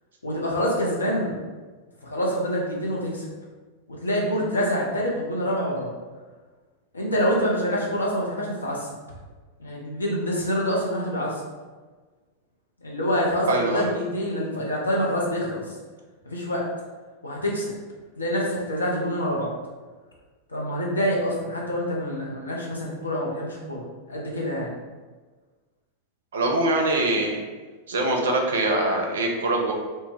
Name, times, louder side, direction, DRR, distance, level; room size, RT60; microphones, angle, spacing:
voice 1, 0.2-1.4 2.0-3.3 3.9-5.9 6.9-8.9 9.6-11.4 12.8-15.6 16.3-16.7 17.2-17.7 18.2-19.5 20.5-24.7, equal, 75° left, -3 dB, 0.6 m, -26 dB
voice 2, 13.5-13.9 26.3-27.4 27.9-29.7, right 2 dB, 65° right, 1 dB, 0.4 m, -23 dB
2.1 x 2.0 x 3.3 m, 1.3 s
figure-of-eight pair, 90°, 0 cm